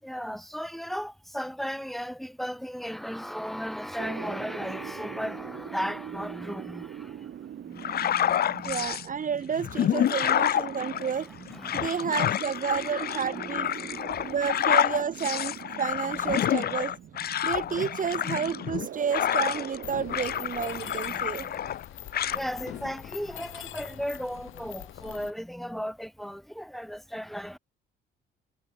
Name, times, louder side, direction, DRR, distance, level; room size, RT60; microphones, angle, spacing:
voice 1, 0.0-7.3 7.6-8.9 11.5-12.0 13.3-14.4 20.6-21.7 22.1-27.6, equal, ahead, 6.1 m, -36 dB
sound 1, 4.0-21.7, right 10 dB, 65° right, 8.0 m, -42 dB
sound 2, 7.8-9.1 9.5-19.8 20.1-21.8 22.1-22.4, left 10 dB, 50° left, 0.6 m, -28 dB
voice 2, 8.6-11.3 11.7-13.7 14.2-16.9 17.4-21.5, right 7 dB, 40° right, 1.5 m, -30 dB
Mechanisms, 19.8-25.3, left 13 dB, 80° left, 3.1 m, -43 dB
cardioid pair, 90°, 20 cm